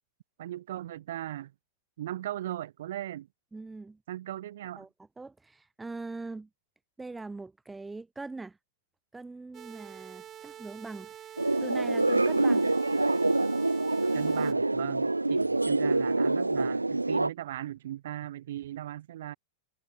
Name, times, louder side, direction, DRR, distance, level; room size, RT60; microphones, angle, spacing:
voice 1, 0.4-1.5 2.0-3.3 4.1-4.8 14.1-19.3, right 13 dB, 60° right, 2.6 m, -38 dB
voice 2, 3.5-4.0 4.8-6.5 7.0-8.6 9.1-12.7, right 3 dB, 10° right, 2.6 m, -42 dB
sound 1, 9.5-14.5, right 10 dB, 30° right, 3.4 m, -47 dB
sound 2, 11.4-17.3, right 2 dB, 85° right, 0.4 m, -26 dB
figure-of-eight pair, 90°, 0 cm